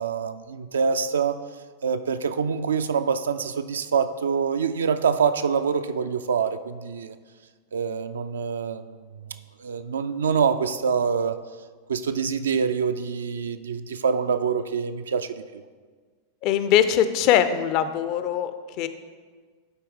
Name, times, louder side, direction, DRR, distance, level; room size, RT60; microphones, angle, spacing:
voice 1, 0.0-1.4 1.8-7.2 7.7-9.0 9.6-11.4 11.9-15.6, right 6 dB, 65° right, 10 dB, 0.3 m, -25 dB
voice 2, 16.4-18.9, left 10 dB, 40° left, 11 dB, 0.4 m, -22 dB
11.0 x 4.4 x 3.5 m, 1.5 s
figure-of-eight pair, 90°, 0 cm